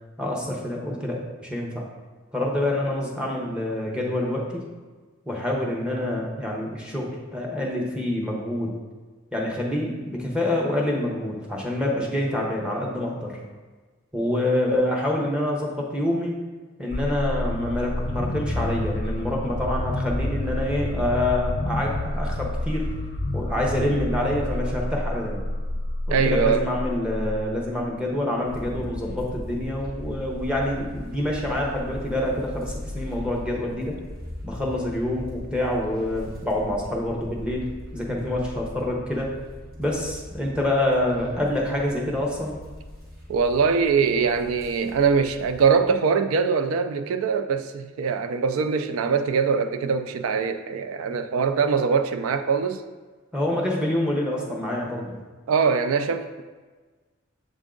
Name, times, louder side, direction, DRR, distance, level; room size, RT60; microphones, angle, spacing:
voice 1, 0.2-1.9 2.3-4.6 5.3-8.7 9.3-13.4 14.1-16.4 16.8-22.9 23.3-25.4 26.1-34.0 34.4-39.3 39.8-42.6 53.3-55.1, left 1 dB, 5° right, -3 dB, 0.8 m, -26 dB
sound 1, 16.9-27.8, left 1 dB, 40° left, 0.6 m, -29 dB
voice 2, 26.1-26.7 43.3-52.8 55.5-56.4, right 5 dB, 90° right, 10 dB, 0.4 m, -22 dB
sound 2, 28.4-45.7, left 1 dB, 45° right, 1.5 m, -39 dB
7.5 x 3.6 x 3.7 m, 1.4 s
head